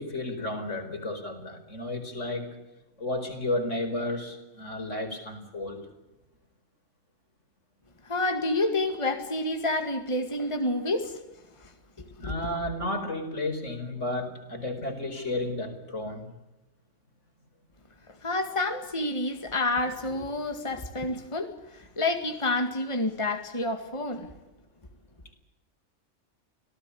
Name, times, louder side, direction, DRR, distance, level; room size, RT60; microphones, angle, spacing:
voice 1, 0.0-2.5 3.0-5.8 12.2-16.3, left 1 dB, 75° left, 5 dB, 5.1 m, -32 dB
voice 2, 8.0-11.2 11.6-11.7 12.0-12.3 18.2-24.3, left 2 dB, 25° left, 6 dB, 2.2 m, -29 dB
26.0 x 18.0 x 8.6 m, 0.97 s
omnidirectional pair, 1.3 m